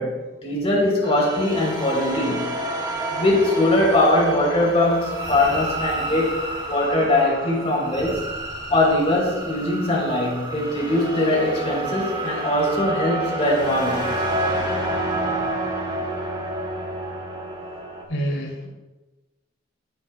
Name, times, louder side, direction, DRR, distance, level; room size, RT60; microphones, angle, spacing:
voice 1, 0.0-2.5 3.1-8.2 8.7-14.2, left 1 dB, 30° left, -1 dB, 3.5 m, -21 dB
sound 1, 1.0-18.0, right 1 dB, 25° right, 2.0 m, -29 dB
voice 2, 18.1-18.7, right 1 dB, 85° left, 0 dB, 2.9 m, -27 dB
17.0 x 9.7 x 2.3 m, 1.1 s
head